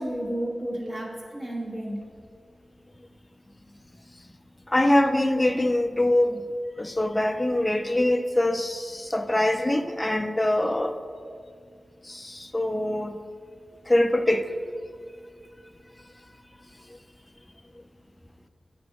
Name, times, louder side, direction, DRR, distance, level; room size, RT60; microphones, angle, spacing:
voice 1, 0.0-2.0, right 1 dB, 40° right, -2 dB, 1.2 m, -32 dB
voice 2, 4.7-6.4 6.8-11.0 12.0-13.2 13.9-14.5, left 1 dB, 15° left, 8 dB, 0.4 m, -23 dB
7.7 x 3.5 x 5.3 m, 2.2 s
wide cardioid pair, 90°, 0 cm